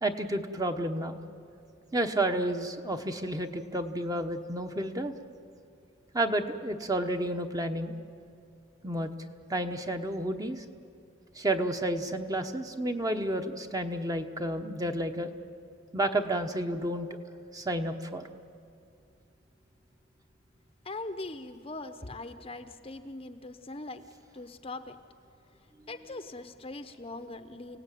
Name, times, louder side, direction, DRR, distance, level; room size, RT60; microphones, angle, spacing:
voice 1, 0.0-1.2 1.9-5.1 6.1-8.0 8.8-9.1 9.5-10.6 11.3-15.3 15.9-17.1 17.5-18.2, right 1 dB, 15° right, 6 dB, 1.0 m, -31 dB
voice 2, 20.8-24.0 24.3-25.0 25.9-27.8, left 2 dB, 25° left, 9 dB, 0.8 m, -41 dB
29.5 x 18.0 x 9.2 m, 2.5 s
head